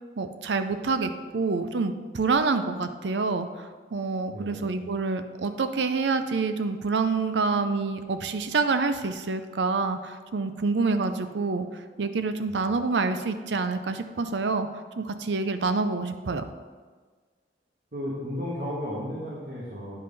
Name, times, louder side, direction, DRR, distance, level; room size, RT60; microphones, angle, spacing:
voice 1, 0.2-11.6 12.0-14.7 15.0-16.4, right 4 dB, 85° right, 9 dB, 0.6 m, -27 dB
voice 2, 4.3-4.8 12.5-12.6 17.9-20.0, equal, 60° right, -7 dB, 1.6 m, -34 dB
9.5 x 5.4 x 4.1 m, 1.5 s
head